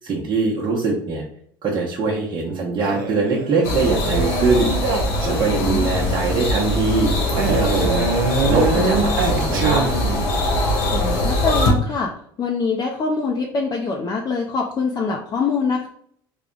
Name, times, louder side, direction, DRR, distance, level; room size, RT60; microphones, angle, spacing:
voice 1, 0.0-1.2 1.6-4.7 5.2-8.1 8.5-9.8, right 4 dB, 40° right, -5 dB, 0.9 m, -22 dB
Male speech man speaking, 2.8-5.8 7.4-10.3, right 4 dB, 85° right, 0.6 m, -24 dB
sound 1, 3.6-11.7, left 1 dB, 75° left, 1.2 m, -22 dB
voice 2, 5.6-6.1 10.9-12.1 12.4-15.9, left 4 dB, 35° left, 0 dB, 0.6 m, -24 dB
3.4 x 2.3 x 3.8 m, 0.63 s
hypercardioid pair, 80°, 12 cm